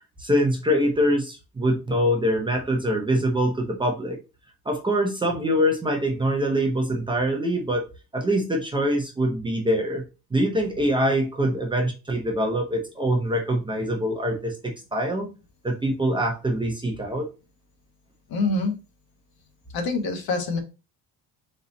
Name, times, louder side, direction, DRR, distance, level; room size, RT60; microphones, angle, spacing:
voice 1, 0.2-4.2 4.7-7.9 8.1-10.0 10.3-15.3 15.6-17.3, equal, 10° right, 1 dB, 0.6 m, -24 dB
voice 2, 18.3-18.7 19.7-20.6, left 3 dB, 60° left, 4 dB, 1.3 m, -25 dB
4.1 x 3.0 x 4.0 m, 0.30 s
cardioid pair, 175°, 39 cm